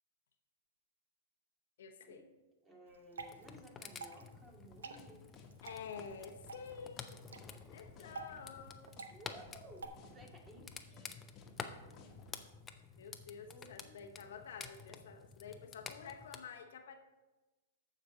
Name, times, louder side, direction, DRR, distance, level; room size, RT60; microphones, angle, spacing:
voice 1, 1.8-2.3 5.6-7.2 7.5-8.9 13.0-17.0, left 6 dB, 75° left, 6 dB, 0.9 m, -50 dB
voice 2, 2.6-5.3 9.1-11.1 13.5-13.9 15.0-15.2, right 1 dB, 20° right, 0 dB, 2.2 m, -57 dB
Water / Drip, 2.9-9.9, right 4 dB, 85° right, 0.8 m, -51 dB
sound 1, 3.2-16.4, left 5 dB, 20° left, 0.6 m, -51 dB
sound 2, 4.5-12.4, left 4 dB, 35° left, 1.4 m, -59 dB
14.0 x 5.2 x 4.0 m, 1.1 s
hypercardioid pair, 120°, 0 cm